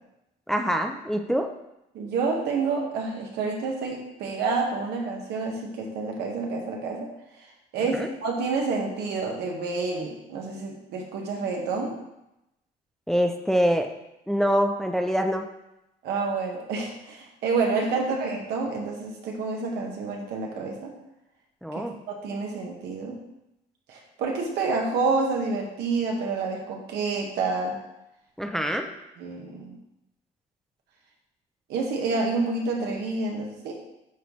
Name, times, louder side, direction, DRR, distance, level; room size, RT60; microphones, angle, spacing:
voice 1, 0.5-1.5 7.9-8.1 13.1-13.9 14.3-15.5 21.6-21.9 28.4-28.9, equal, ahead, 4 dB, 0.5 m, -24 dB
voice 2, 1.9-7.1 7.7-11.9 16.0-20.9 21.7-23.2 23.9-27.8 29.2-29.8 31.7-33.7, right 4 dB, 75° right, 0 dB, 1.4 m, -28 dB
9.1 x 3.9 x 3.1 m, 0.88 s
cardioid pair, 110°, 17 cm